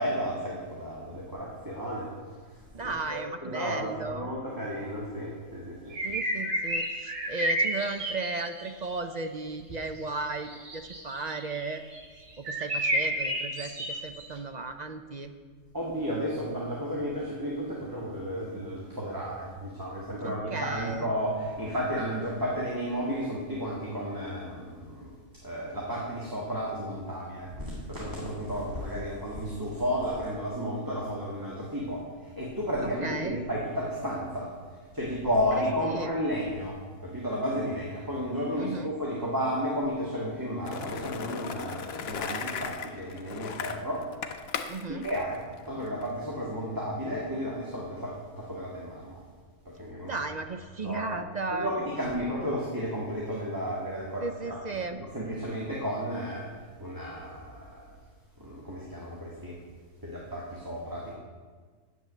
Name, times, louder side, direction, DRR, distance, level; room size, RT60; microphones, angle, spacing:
voice 1, 0.0-2.1 2.8-6.0 15.7-25.2 25.4-34.5 34.9-36.8 37.0-44.0 45.0-45.4 45.7-49.2 49.8-50.1 50.8-51.1 51.5-54.6 55.0-56.4 56.8-57.7 58.4-59.5 60.0-61.1, equal, 15° right, -5 dB, 1.7 m, -32 dB
voice 2, 2.7-4.3 6.0-11.8 12.4-15.3 20.2-21.1 33.0-33.4 35.6-36.1 38.6-38.9 44.7-45.1 50.0-51.7 54.2-55.0, right 3 dB, 45° right, 7 dB, 0.6 m, -35 dB
sound 1, 5.9-8.7 10.3-12.0 12.3-14.3, right 1 dB, 70° right, 2.2 m, -30 dB
Skateboard, 40.7-46.1, left 6 dB, 60° left, 0.9 m, -37 dB
9.5 x 7.4 x 8.3 m, 1.5 s
omnidirectional pair, 1.3 m